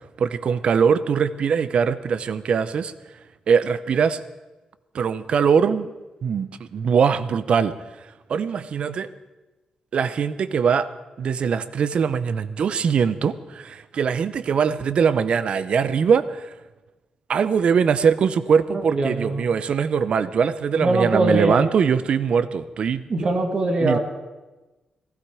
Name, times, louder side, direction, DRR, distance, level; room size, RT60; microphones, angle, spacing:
voice 1, 0.2-2.9 3.5-4.2 4.9-5.9 6.2-7.7 8.3-9.1 9.9-10.9 11.2-16.5 17.3-23.0 23.8-24.0, right 6 dB, 55° right, 14 dB, 0.7 m, -21 dB
voice 2, 18.7-19.4 20.7-21.6 23.1-24.0, right 2 dB, 40° right, 4 dB, 2.0 m, -22 dB
16.0 x 15.5 x 4.9 m, 1.1 s
wide cardioid pair, 145°, 2 cm